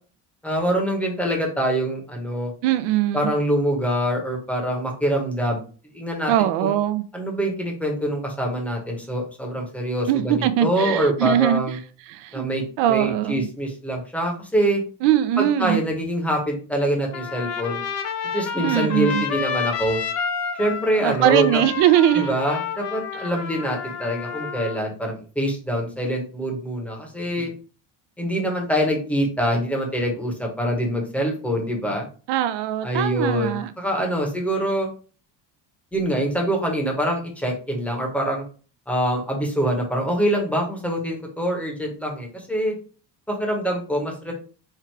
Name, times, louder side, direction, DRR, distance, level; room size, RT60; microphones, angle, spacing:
voice 1, 0.4-2.5 3.1-5.6 5.9-6.8 7.1-11.8 12.3-12.6 12.9-14.8 15.4-17.8 18.3-20.0 20.6-21.6 22.1-27.5 28.2-32.0 32.8-34.9 35.9-38.4 38.9-42.7 43.3-44.3, equal, 5° left, 0.9 m, -25 dB
voice 2, 2.6-3.3 6.3-7.0 10.1-11.8 12.1-12.5 12.8-13.5 15.0-15.8 18.6-19.3 21.0-22.3 32.3-33.7, right 12 dB, 75° right, 0.6 m, -21 dB
Trumpet, 17.1-24.8, left 6 dB, 40° left, 0.5 m, -30 dB
4.5 x 2.4 x 4.5 m
cardioid pair, 175°, 42 cm